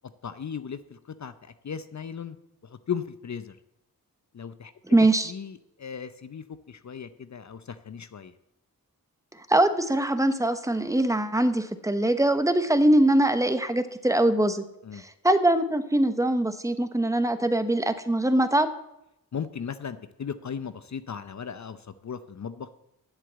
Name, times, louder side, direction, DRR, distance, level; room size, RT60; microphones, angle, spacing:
voice 1, 0.2-2.4 2.6-3.6 4.3-4.7 5.2-8.3 14.8-15.0 19.3-22.7, left 7 dB, 50° left, 12 dB, 0.7 m, -37 dB
voice 2, 4.9-5.3 9.5-14.6 15.2-18.7, right 1 dB, 10° right, 10 dB, 1.0 m, -22 dB
8.2 x 7.6 x 8.0 m, 0.86 s
cardioid pair, 55°, 36 cm